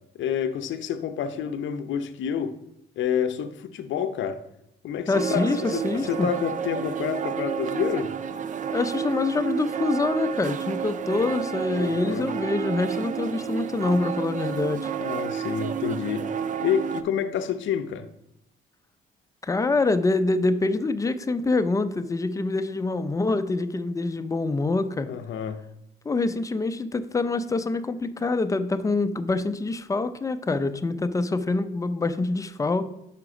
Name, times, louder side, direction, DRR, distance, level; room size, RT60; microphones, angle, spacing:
voice 1, 0.1-2.6 3.0-4.4 4.8-8.1 11.7-12.3 15.0-16.3 16.6-18.1 25.1-25.6, left 8 dB, 70° left, 10 dB, 0.6 m, -28 dB
voice 2, 5.1-6.3 8.7-14.9 19.4-25.1 26.1-32.9, left 3 dB, 15° left, 10 dB, 0.5 m, -25 dB
sound 1, 5.1-17.0, right 7 dB, 40° right, 0.4 m, -30 dB
5.8 x 5.0 x 4.8 m, 0.82 s
cardioid pair, 90°, 20 cm